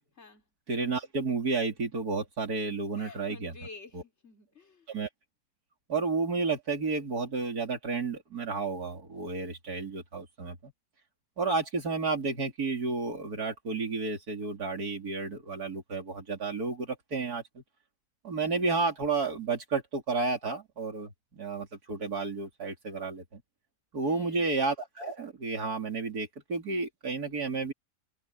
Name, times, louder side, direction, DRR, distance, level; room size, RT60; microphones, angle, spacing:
voice 1, 0.7-3.5 3.9-4.0 4.9-5.1 5.9-10.7 11.4-17.6 18.2-23.4 23.9-27.7, right 4 dB, 85° right, 3.7 m, -31 dB
voice 2, 3.0-4.9 24.0-24.4, left 4 dB, 45° left, 3.9 m, -50 dB
omnidirectional pair, 1.6 m